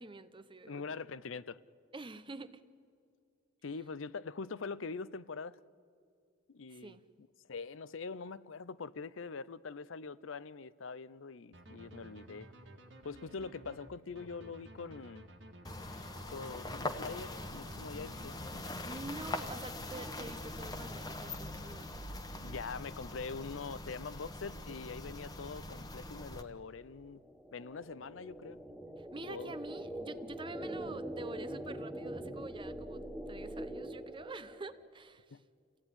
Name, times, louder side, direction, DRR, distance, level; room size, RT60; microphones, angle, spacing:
voice 1, 0.0-1.0 1.9-2.6 6.7-7.0 18.7-21.9 29.0-35.4, right 2 dB, 25° right, 0.8 m, -47 dB
voice 2, 0.7-1.6 3.6-5.6 6.5-7.0 7.5-12.5 13.0-15.3 15.8-18.6 22.4-27.2 27.5-28.6 29.3-29.5 35.3-35.4, left 4 dB, 75° left, 0.6 m, -43 dB
sound 1, 11.5-20.8, right 1 dB, 65° right, 2.0 m, -54 dB
sound 2, 15.6-26.4, left 2 dB, 20° left, 1.2 m, -42 dB
sound 3, 26.0-34.9, right 1 dB, ahead, 1.9 m, -44 dB
28.0 x 16.5 x 9.8 m
head